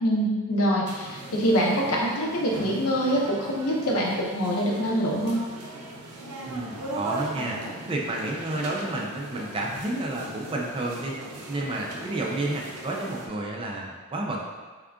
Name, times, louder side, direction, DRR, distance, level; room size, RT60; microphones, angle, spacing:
voice 1, 0.0-5.4, equal, 80° left, -2 dB, 0.7 m, -25 dB
sound 1, 0.9-13.3, right 2 dB, 90° right, 0.6 m, -39 dB
voice 2, 6.4-7.6 7.9-11.1 11.5-14.4, right 2 dB, 25° right, -2 dB, 0.4 m, -30 dB
3.6 x 2.3 x 3.5 m, 1.4 s
head